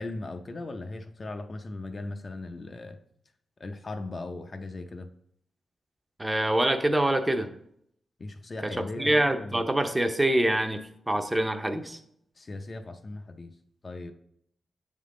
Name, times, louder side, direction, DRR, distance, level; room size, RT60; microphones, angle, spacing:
voice 1, 0.0-3.0 3.6-5.1 8.2-9.7 12.4-13.5 13.8-14.1, left 2 dB, 40° left, 6 dB, 0.5 m, -38 dB
voice 2, 6.2-7.5 8.7-12.0, right 1 dB, 15° right, 7 dB, 0.6 m, -25 dB
7.6 x 3.7 x 3.7 m, 0.71 s
cardioid pair, 65°, 0 cm